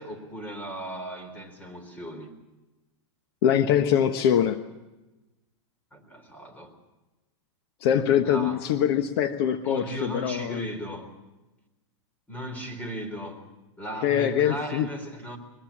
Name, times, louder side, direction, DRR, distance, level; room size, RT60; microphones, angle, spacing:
voice 1, 0.0-2.3 5.9-6.7 8.2-8.6 9.6-11.1 12.3-13.5 13.8-15.4, right 1 dB, 10° left, 6 dB, 4.0 m, -36 dB
voice 2, 3.4-4.6 7.8-10.6 14.0-14.9, left 9 dB, 55° left, 9 dB, 1.2 m, -23 dB
22.5 x 20.5 x 7.3 m, 1.0 s
supercardioid pair, 140°, 15 cm